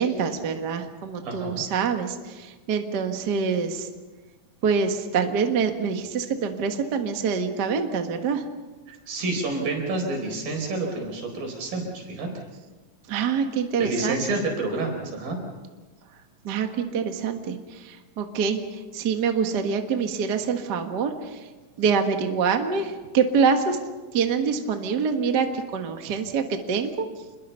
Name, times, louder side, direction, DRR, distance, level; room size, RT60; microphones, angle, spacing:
voice 1, 0.0-3.9 4.6-8.4 13.1-14.4 16.4-21.5 21.8-23.8 24.1-27.0, right 6 dB, 45° right, 5 dB, 1.5 m, -25 dB
voice 2, 1.2-1.6 8.9-12.3 13.8-15.4, right 2 dB, 80° right, 2 dB, 6.2 m, -29 dB
28.0 x 22.0 x 5.6 m, 1.3 s
omnidirectional pair, 4.0 m